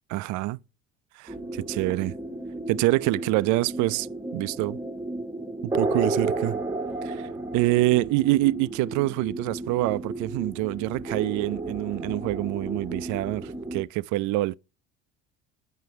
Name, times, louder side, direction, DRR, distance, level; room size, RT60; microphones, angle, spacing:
voice 1, 0.1-0.6 1.2-2.1 2.7-4.1 4.3-4.8 5.6-6.6 7.0-14.5, right 19 dB, 50° right, 0.4 m, -26 dB
sound 1, 1.3-13.8, right 2 dB, 10° right, 0.9 m, -33 dB
9.1 x 5.6 x 4.7 m
hypercardioid pair, 60°, 38 cm